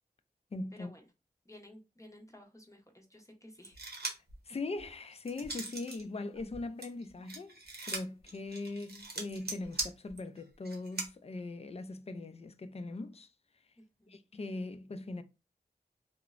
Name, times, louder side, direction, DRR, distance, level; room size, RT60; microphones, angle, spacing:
voice 1, 0.5-0.9 4.5-13.3 14.1-15.2, left 2 dB, 40° left, 0.4 m, -40 dB
voice 2, 1.4-3.8 13.8-14.2, left 1 dB, 20° left, 0.7 m, -55 dB
sound 1, 3.6-4.3 4.8-6.0 6.4-11.1, right 3 dB, 80° right, 0.7 m, -40 dB
2.9 x 2.0 x 2.4 m
wide cardioid pair, 45°, 16 cm